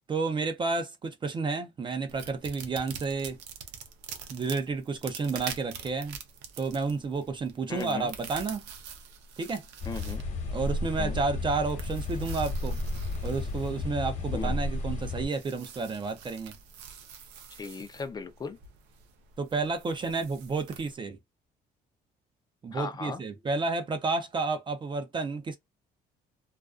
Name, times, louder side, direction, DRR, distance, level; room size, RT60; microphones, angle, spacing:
voice 1, 0.1-3.4 4.3-6.2 6.6-8.6 9.4-9.6 10.5-12.8 13.2-16.5 19.4-21.2 22.6-25.6, right 4 dB, 30° right, 0.4 m, -31 dB
sound 1, 2.1-20.9, right 7 dB, 85° right, 0.6 m, -46 dB
voice 2, 7.7-8.1 9.9-10.3 11.0-11.2 14.3-14.6 17.6-18.6 22.7-23.2, left 4 dB, 25° left, 0.4 m, -37 dB
sound 2, 9.8-15.3, left 2 dB, 45° left, 1.0 m, -32 dB
2.4 x 2.2 x 2.3 m
cardioid pair, 110°, 17 cm